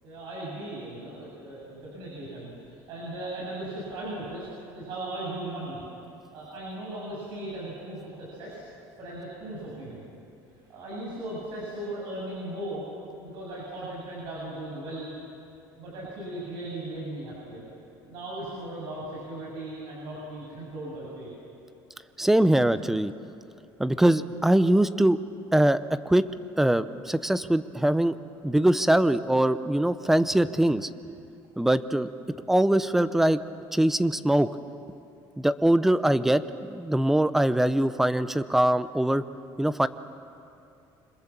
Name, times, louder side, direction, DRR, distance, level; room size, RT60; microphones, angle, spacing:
voice 1, 0.0-4.5 4.7-5.8 6.3-8.6 9.0-10.1 10.7-12.8 13.2-15.1 15.8-17.7 18.0-21.3, right 1 dB, 60° right, -5 dB, 7.8 m, -37 dB
voice 2, 22.2-23.1 23.8-25.2 25.5-25.8 26.1-26.3 26.6-28.2 28.4-30.9 31.6-32.1 32.5-33.4 33.7-34.5 35.4-36.4 36.7-39.2 39.6-39.9, right 1 dB, 5° right, 13 dB, 0.6 m, -22 dB
28.0 x 26.5 x 7.4 m, 2.7 s
cardioid pair, 170°, 9 cm